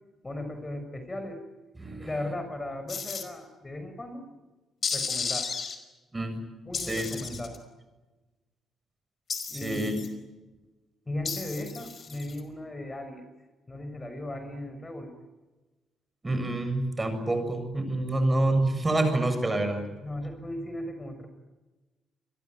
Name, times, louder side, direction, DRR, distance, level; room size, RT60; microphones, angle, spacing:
voice 1, 0.2-1.4 2.0-4.2 4.9-5.5 6.7-7.6 9.5-10.0 11.1-13.2 13.7-15.1 20.0-21.3, left 1 dB, 20° left, 7 dB, 5.5 m, -37 dB
voice 2, 1.8-2.1 6.1-6.5 6.9-7.1 9.6-10.0 16.2-19.8, right 2 dB, 20° right, 8 dB, 7.0 m, -27 dB
sound 1, 2.9-3.2 4.8-5.8 6.7-7.6 9.3-10.1 11.3-12.4, left 5 dB, 45° left, 5.1 m, -33 dB
28.0 x 22.5 x 9.2 m, 1.2 s
cardioid pair, 90°, 0 cm